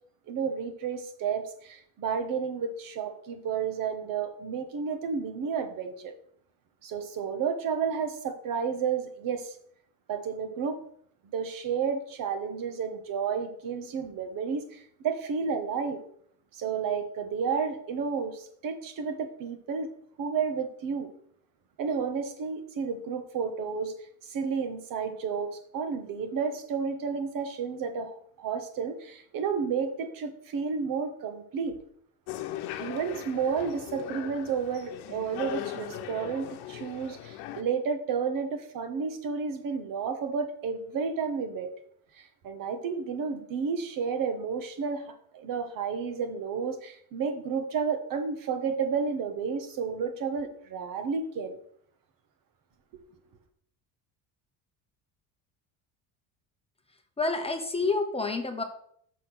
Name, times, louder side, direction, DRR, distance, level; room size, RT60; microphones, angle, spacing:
voice 1, 0.3-6.1 6.8-9.5 10.1-10.8 11.2-16.0 16.5-19.9 20.2-21.1 21.8-31.8 32.8-41.7 42.1-51.6 52.9-53.0, right 6 dB, 55° right, 8 dB, 1.3 m, -31 dB
sound 1, 32.3-37.6, left 12 dB, 80° left, 0.9 m, -39 dB
voice 2, 57.2-58.6, left 3 dB, 15° left, 5 dB, 0.8 m, -28 dB
6.7 x 6.2 x 6.0 m, 0.64 s
cardioid pair, 140°, 39 cm